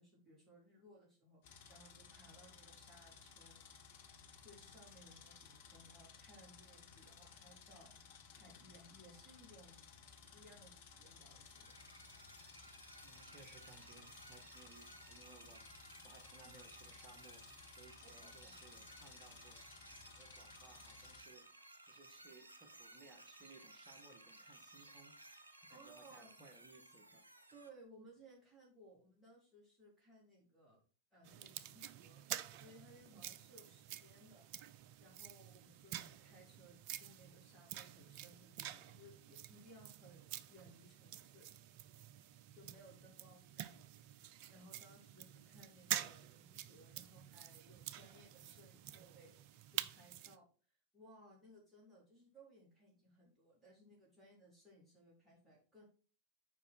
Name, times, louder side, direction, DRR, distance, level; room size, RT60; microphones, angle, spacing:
voice 1, 0.0-1.4 1.7-3.6 4.4-9.9 10.3-11.8 18.0-18.8 25.7-26.3 27.5-30.8 31.1-32.2 32.6-34.4 35.0-41.5 42.5-55.8, equal, 5° right, -5 dB, 4.1 m, -62 dB
sound 1, 1.4-21.2, left 6 dB, 55° left, 1.4 m, -59 dB
sound 2, 11.0-27.7, right 2 dB, 75° right, 1.0 m, -59 dB
voice 2, 13.0-15.7 16.0-17.5 17.8-19.7 20.1-21.5 21.9-25.1 25.7-27.2 33.1-33.3 43.0-43.3, right 3 dB, 25° right, 4 dB, 1.9 m, -62 dB
sound 3, 31.2-50.4, right 11 dB, 45° right, 0.4 m, -48 dB
7.4 x 5.2 x 4.6 m, 0.38 s
figure-of-eight pair, 90°, 0 cm